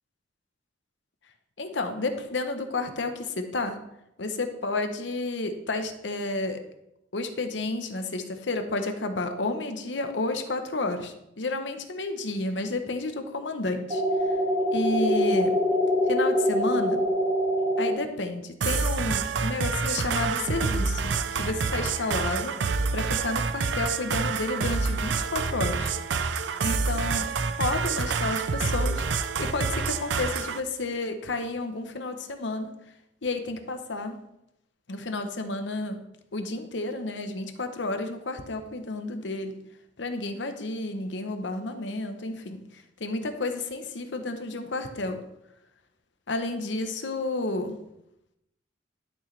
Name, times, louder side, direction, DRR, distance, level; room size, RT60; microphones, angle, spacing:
voice 1, 1.6-3.8 4.2-6.6 7.1-14.4 14.7-15.5 16.1-17.0 17.8-22.5 22.9-25.9 26.6-32.7 33.2-34.2 34.9-36.0 36.3-39.6 40.0-45.2 46.3-47.8, left 2 dB, 70° left, 7 dB, 0.9 m, -31 dB
sound 1, 13.9-17.9, equal, 35° right, 2.1 m, -24 dB
sound 2, 18.6-30.6, right 4 dB, 70° right, 0.5 m, -27 dB
11.5 x 6.4 x 3.3 m, 0.85 s
head